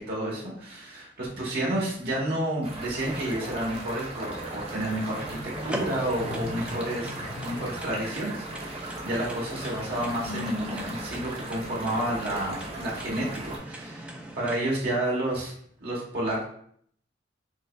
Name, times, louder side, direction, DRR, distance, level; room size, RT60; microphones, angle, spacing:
voice 1, 0.0-7.2 7.4-15.5 15.8-16.4, right 1 dB, 65° right, -4 dB, 1.1 m, -30 dB
sound 1, 2.6-13.6, right 2 dB, 35° right, 0.7 m, -38 dB
sound 2, 4.3-14.5, right 1 dB, 5° right, 0.3 m, -41 dB
sound 3, 5.7-11.0, left 2 dB, 65° left, 0.9 m, -41 dB
4.6 x 2.2 x 2.2 m, 0.64 s
head